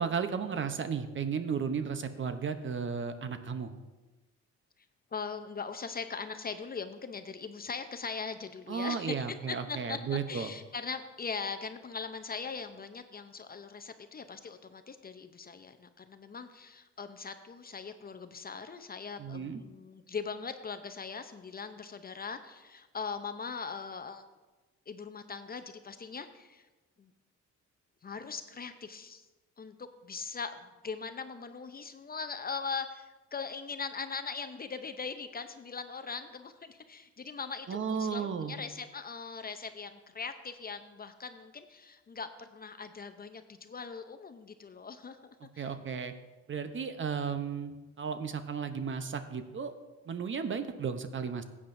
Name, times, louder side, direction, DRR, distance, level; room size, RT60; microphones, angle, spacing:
voice 1, 0.0-3.7 8.7-10.5 19.2-19.6 37.7-38.6 45.6-46.1 46.5-49.7 50.1-51.4, right 6 dB, 40° right, 9 dB, 0.8 m, -34 dB
voice 2, 5.1-24.2 24.9-26.7 27.0-27.1 28.0-29.3 29.6-45.2 45.5-45.7, left 5 dB, 30° left, 9 dB, 0.6 m, -40 dB
14.5 x 8.6 x 2.6 m, 1.2 s
cardioid pair, 90°, 30 cm